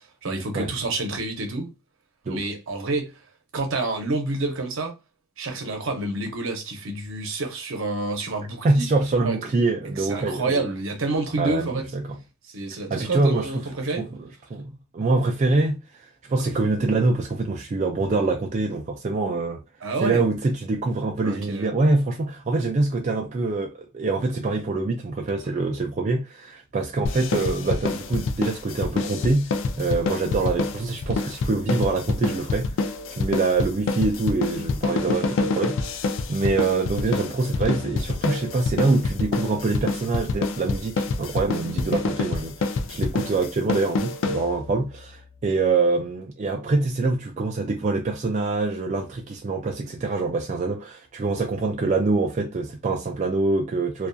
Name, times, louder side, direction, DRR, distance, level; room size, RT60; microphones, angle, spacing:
voice 1, 0.0-1.7 2.3-3.1 3.5-4.9 5.4-8.8 9.2-9.4 10.0-11.9 12.5-14.1 19.8-20.2 21.2-21.7, right 2 dB, 75° right, 0.7 m, -28 dB
voice 2, 8.6-10.6 11.4-12.2 12.9-13.5 14.0-19.6 20.0-35.8 36.3-54.1, right 3 dB, 35° right, 0.3 m, -25 dB
sound 1, 27.1-44.8, left 3 dB, 65° left, 0.3 m, -27 dB
2.5 x 2.3 x 2.2 m
head